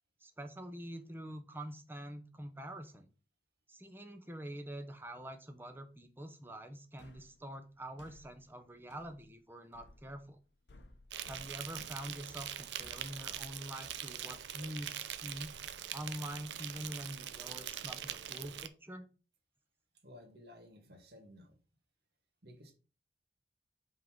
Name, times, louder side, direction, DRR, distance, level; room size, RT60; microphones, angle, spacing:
voice 1, 0.2-3.1 3.7-10.4 11.3-15.6 15.9-19.1, equal, 10° right, 7 dB, 0.7 m, -45 dB
sound 1, 7.0-16.1, left 2 dB, 85° left, 0.9 m, -60 dB
Insect, 11.1-18.7, right 10 dB, 80° right, 0.5 m, -43 dB
voice 2, 20.0-21.6 22.4-22.7, left 1 dB, 60° right, 3 dB, 1.7 m, -55 dB
5.4 x 3.9 x 6.0 m, 0.36 s
head